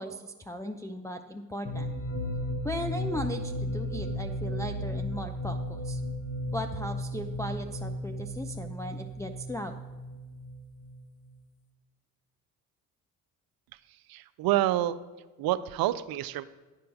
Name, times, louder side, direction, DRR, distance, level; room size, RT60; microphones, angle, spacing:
voice 1, 0.0-1.9 2.6-6.0 6.5-9.8, left 1 dB, 5° left, 3 dB, 0.4 m, -37 dB
sound 1, 1.7-11.3, left 1 dB, 40° left, 1.1 m, -35 dB
voice 2, 14.1-15.0 15.4-16.4, right 14 dB, 55° right, 15 dB, 0.5 m, -27 dB
10.5 x 4.5 x 6.3 m, 1.2 s
hypercardioid pair, 45°, 45 cm